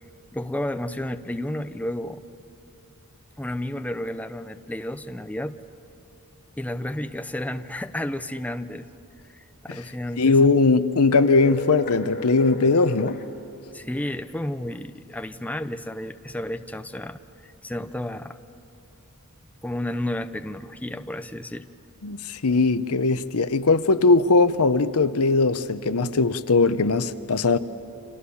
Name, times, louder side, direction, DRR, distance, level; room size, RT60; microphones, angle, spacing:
voice 1, 0.3-2.2 3.4-5.5 6.6-8.9 9.3-10.4 13.7-18.4 19.6-21.7 22.5-22.6, left 1 dB, 5° left, 9 dB, 0.6 m, -32 dB
voice 2, 10.2-13.2 22.0-27.6, left 3 dB, 75° left, 13 dB, 0.9 m, -20 dB
sound 1, 11.1-13.2, left 3 dB, 45° left, 2.0 m, -34 dB
29.5 x 26.0 x 7.2 m, 2.8 s
head